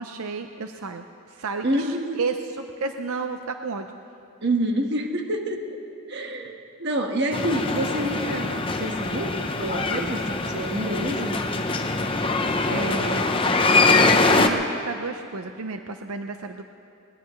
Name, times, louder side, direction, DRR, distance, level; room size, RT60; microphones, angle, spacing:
voice 1, 0.0-3.9 12.7-13.3 13.8-16.6, right 4 dB, 80° right, 6 dB, 0.6 m, -32 dB
voice 2, 1.6-2.2 4.4-5.7 6.1-11.4, right 1 dB, 50° right, 3 dB, 1.4 m, -27 dB
sound 1, 7.3-14.5, left 3 dB, 25° left, 0.7 m, -23 dB
21.0 x 20.0 x 3.2 m, 2.5 s
head